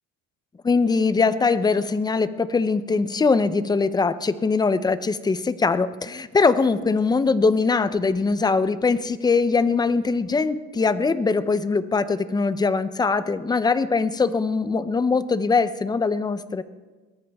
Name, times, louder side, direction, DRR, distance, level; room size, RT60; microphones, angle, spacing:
voice 1, 0.6-16.6, left 4 dB, 15° left, 13 dB, 0.6 m, -22 dB
22.5 x 18.0 x 3.5 m, 1.3 s
cardioid pair, 145°, 30 cm